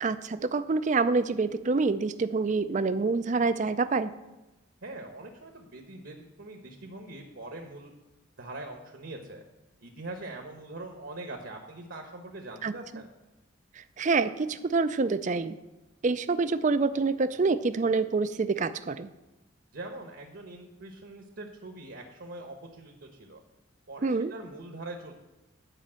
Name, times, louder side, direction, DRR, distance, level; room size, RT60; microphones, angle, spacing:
voice 1, 0.0-4.1 12.6-13.0 13.8-15.6 16.0-19.1 24.0-24.3, right 4 dB, 35° right, 12 dB, 0.4 m, -27 dB
voice 2, 4.8-7.9 8.4-9.4 9.8-13.1 19.7-23.4 23.9-25.1, right 2 dB, 60° right, 3 dB, 1.1 m, -42 dB
10.0 x 5.2 x 7.6 m, 1.0 s
head